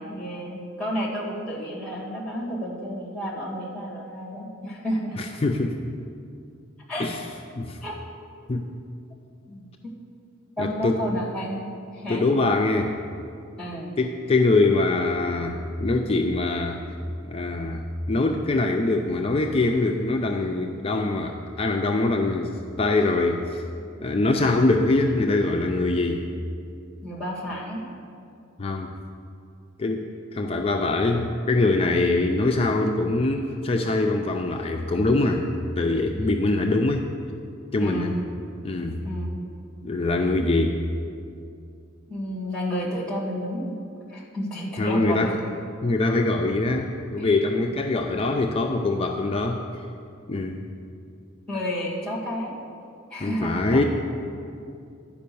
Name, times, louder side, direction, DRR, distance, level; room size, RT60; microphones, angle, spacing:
voice 1, 0.0-5.2 6.9-7.1 7.8-8.0 9.5-9.9 10.6-12.3 13.6-14.0 27.0-27.8 37.8-38.2 39.0-39.4 42.1-43.7 44.1-45.3 47.2-47.3 51.5-52.5 53.1-53.8, equal, 5° left, -4 dB, 2.0 m, -31 dB
voice 2, 5.2-5.8 7.0-7.2 7.6-7.8 8.5-8.7 10.6-11.0 12.1-12.9 14.0-16.8 17.3-17.8 18.1-23.6 24.0-26.3 28.6-28.9 29.8-30.1 30.3-35.5 35.8-37.1 37.7-38.1 38.6-39.0 39.8-40.8 44.8-45.3 45.8-49.6 50.3-50.7 53.2-53.8, left 2 dB, 30° left, 2 dB, 0.4 m, -23 dB
10.5 x 5.2 x 6.9 m, 2.5 s
head